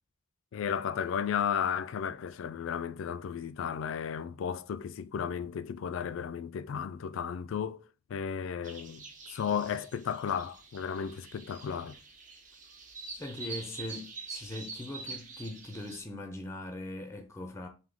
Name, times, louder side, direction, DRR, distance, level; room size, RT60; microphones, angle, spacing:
voice 1, 0.5-7.8 8.1-9.0 9.3-12.0, left 7 dB, 85° left, 0.3 m, -34 dB
sound 1, 8.6-16.0, right 4 dB, 40° right, 0.7 m, -46 dB
voice 2, 13.1-17.7, left 1 dB, 15° left, 0.5 m, -40 dB
3.5 x 2.7 x 3.7 m
head